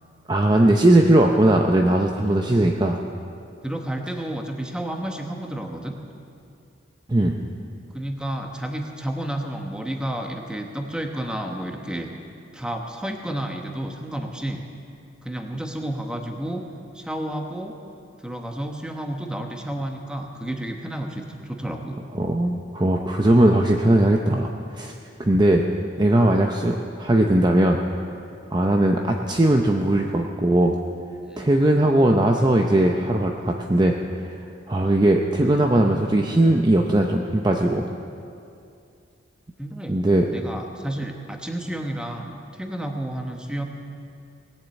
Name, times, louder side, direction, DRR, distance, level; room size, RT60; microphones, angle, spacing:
voice 1, 0.3-3.0 7.1-7.5 22.1-24.9 25.2-25.7 26.0-27.8 28.5-30.7 31.4-34.0 34.7-37.9 39.9-40.4, right 1 dB, 20° right, 2 dB, 0.6 m, -19 dB
voice 2, 2.2-2.5 3.6-5.9 7.9-12.1 12.5-14.6 15.2-16.6 16.9-17.8 18.2-22.0 31.2-31.5 39.6-40.0 40.3-43.6, right 1 dB, 5° right, 3 dB, 1.0 m, -31 dB
19.0 x 7.4 x 8.2 m, 2.5 s
head